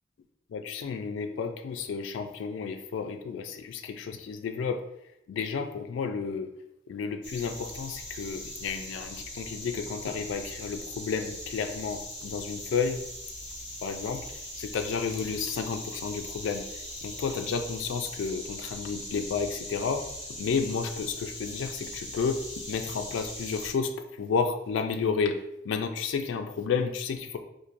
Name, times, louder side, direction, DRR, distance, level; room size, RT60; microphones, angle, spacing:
voice 1, 0.5-4.8 5.3-6.5 6.9-13.0 13.8-14.2 14.6-16.7 17.0-20.1 20.4-27.4, left 5 dB, 85° left, 6 dB, 0.3 m, -31 dB
sound 1, 7.2-23.7, left 1 dB, 30° left, 1.5 m, -40 dB
4.4 x 2.6 x 2.5 m, 0.84 s
head